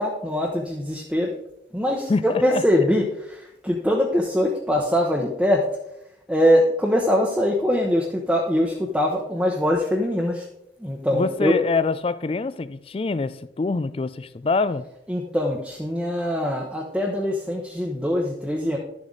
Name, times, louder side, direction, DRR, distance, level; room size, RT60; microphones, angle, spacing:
voice 1, 0.0-1.3 1.7-5.6 6.3-10.4 10.8-11.6 15.1-18.8, equal, 5° right, 0.9 m, -22 dB
voice 2, 2.1-2.6 11.1-14.8, left 3 dB, 30° left, 0.3 m, -25 dB
11.5 x 7.2 x 3.9 m
head